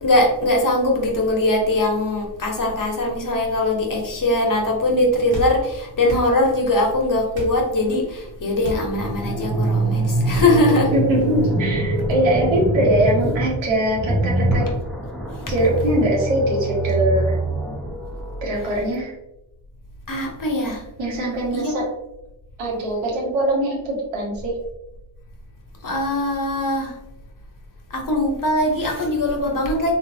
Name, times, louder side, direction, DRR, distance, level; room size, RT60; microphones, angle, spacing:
voice 1, 0.0-10.9 20.1-20.8 21.5-21.8 25.8-27.0 27.9-29.9, left 1 dB, 45° left, 0 dB, 1.1 m, -21 dB
sound 1, 5.3-5.6 6.1-6.3 7.3-7.6 8.6-8.9 10.3-10.5, right 1 dB, 60° right, 1.2 m, -29 dB
sound 2, 8.9-18.7, right 2 dB, ahead, 0.8 m, -24 dB
voice 2, 10.9-14.7 15.5-17.4 18.4-19.1 21.0-21.9 22.6-24.6, right 1 dB, 90° right, -3 dB, 1.2 m, -22 dB
3.1 x 2.6 x 2.7 m, 0.89 s
cardioid pair, 60°, 46 cm